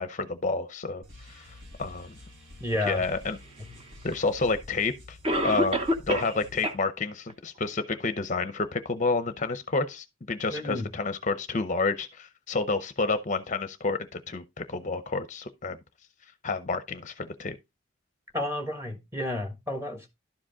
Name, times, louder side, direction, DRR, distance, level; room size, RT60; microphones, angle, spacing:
voice 1, 0.0-1.5 1.8-2.2 2.9-3.4 4.0-5.2 5.4-15.8 16.4-17.6, left 3 dB, 35° left, 0.6 m, -29 dB
sound 1, 1.0-6.7, left 1 dB, 70° right, 2.7 m, -49 dB
voice 2, 2.6-3.0 3.7-3.8 10.5-10.9 18.3-20.1, left 1 dB, 15° right, 1.5 m, -31 dB
Cough, 4.1-4.2 5.2-6.4 6.6-6.7 7.3-7.4 7.9-8.0, equal, 30° right, 1.0 m, -26 dB
12.0 x 5.1 x 3.7 m
head